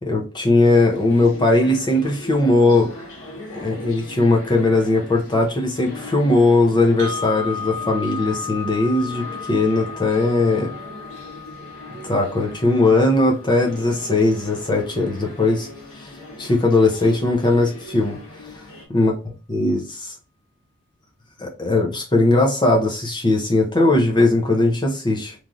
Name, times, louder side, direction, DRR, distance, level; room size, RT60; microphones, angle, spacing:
voice 1, 0.0-2.9 3.5-10.7 12.0-15.7 16.0-16.1 16.4-18.2 18.5-18.6 18.9-19.1 19.5-20.1 21.4-25.3, left 2 dB, 20° left, 1 dB, 0.5 m, -19 dB
sound 1, 0.9-18.9, left 1 dB, 75° left, 1.1 m, -39 dB
sound 2, 7.0-15.0, left 6 dB, 55° right, 0.5 m, -35 dB
3.0 x 2.5 x 2.4 m, 0.34 s
head